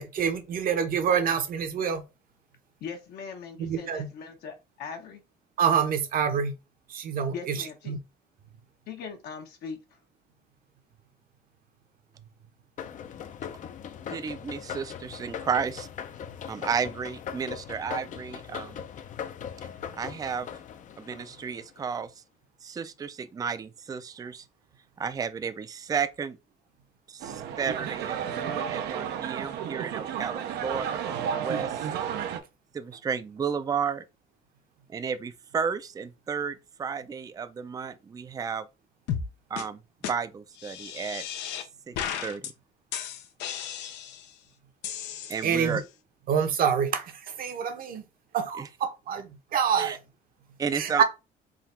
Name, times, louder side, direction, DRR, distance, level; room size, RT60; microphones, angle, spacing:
voice 1, 0.0-2.0 3.6-4.1 5.6-6.5 6.9-7.6 7.9-8.0 45.4-45.8 46.3-48.0 48.3-50.0 50.7-51.0, right 7 dB, 55° right, 0.9 m, -26 dB
voice 2, 2.8-5.2 7.3-7.9 8.9-9.8, left 6 dB, 70° left, 1.0 m, -40 dB
sound 1, 12.8-21.9, left 8 dB, 50° left, 0.5 m, -40 dB
voice 3, 14.1-15.9 16.4-18.8 20.0-20.5 21.0-22.2 22.6-24.5 25.0-26.4 27.1-31.8 32.7-34.0 34.9-38.7 39.5-41.2 41.9-42.5 45.3-45.8 48.6-48.7 49.8-50.0 50.6-51.0, right 6 dB, 20° right, 0.4 m, -32 dB
sound 2, 27.2-32.4, right 8 dB, 80° right, 0.7 m, -32 dB
sound 3, 39.1-39.3 39.6-39.7 40.0-40.1 40.6-41.7 42.0-42.5 42.9-44.3 44.8-45.8, left 9 dB, 85° left, 0.7 m, -35 dB
3.8 x 2.4 x 4.3 m
cardioid pair, 110°, 17 cm